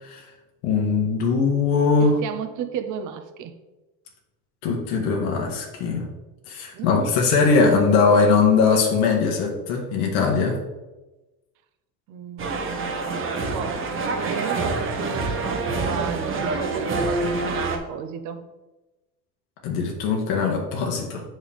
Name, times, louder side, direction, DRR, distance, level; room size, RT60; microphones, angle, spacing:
voice 1, 0.6-2.2 4.6-6.1 6.5-10.6 19.6-21.2, left 4 dB, 80° left, 1 dB, 1.6 m, -20 dB
voice 2, 2.0-3.5 6.7-7.1 12.1-13.1 13.5-18.4, right 8 dB, 55° right, 8 dB, 0.9 m, -33 dB
sound 1, 12.4-17.8, right 3 dB, 35° right, 1.1 m, -26 dB
7.7 x 6.4 x 3.5 m, 1.1 s
cardioid pair, 145°, 37 cm